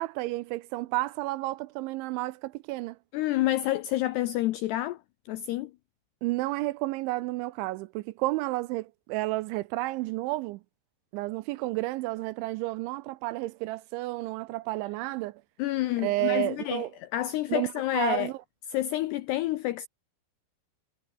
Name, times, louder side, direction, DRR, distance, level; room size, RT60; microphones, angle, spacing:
voice 1, 0.0-3.0 6.2-10.6 11.1-15.4 16.0-16.9 17.5-18.4, right 19 dB, 85° right, 2.8 m, -31 dB
voice 2, 3.1-5.0 5.3-5.7 15.6-18.3 18.7-19.9, left 15 dB, 85° left, 2.4 m, -29 dB
omnidirectional pair, 5.7 m